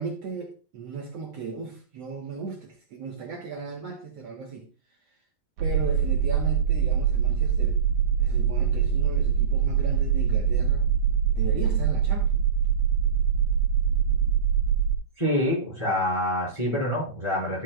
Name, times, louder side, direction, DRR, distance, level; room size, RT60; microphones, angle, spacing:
voice 1, 0.0-5.0 5.6-7.8 8.2-10.9 11.4-12.4, right 5 dB, 60° right, 2.1 m, -37 dB
sound 1, 5.6-15.0, right 7 dB, 80° right, 2.5 m, -23 dB
voice 2, 15.2-17.6, left 1 dB, 10° left, 4.1 m, -26 dB
13.0 x 6.3 x 2.3 m
omnidirectional pair, 3.5 m